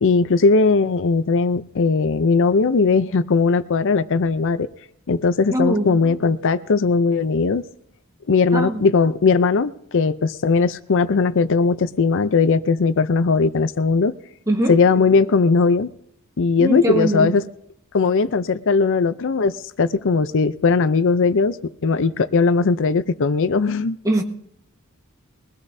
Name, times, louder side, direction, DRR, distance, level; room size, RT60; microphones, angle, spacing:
voice 1, 0.0-4.7 5.1-7.6 8.3-14.1 14.7-15.9 16.4-17.5 17.9-24.0, left 4 dB, 60° left, 0.6 m, -18 dB
voice 2, 5.5-5.9 8.5-8.8 14.5-14.8 16.6-17.3 24.0-24.2, right 1 dB, 15° right, 1.4 m, -21 dB
22.5 x 16.5 x 2.7 m
head